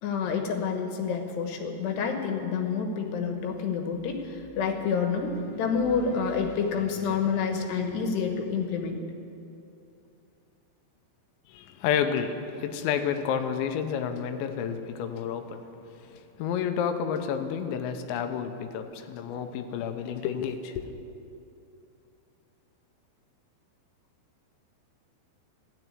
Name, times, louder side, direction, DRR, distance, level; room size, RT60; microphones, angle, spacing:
voice 1, 0.0-9.0, left 6 dB, 70° left, 4 dB, 3.2 m, -28 dB
voice 2, 11.5-15.6 16.0-20.9, left 7 dB, 85° left, 8 dB, 3.1 m, -30 dB
14.0 x 9.9 x 9.5 m, 2.7 s
omnidirectional pair, 5.3 m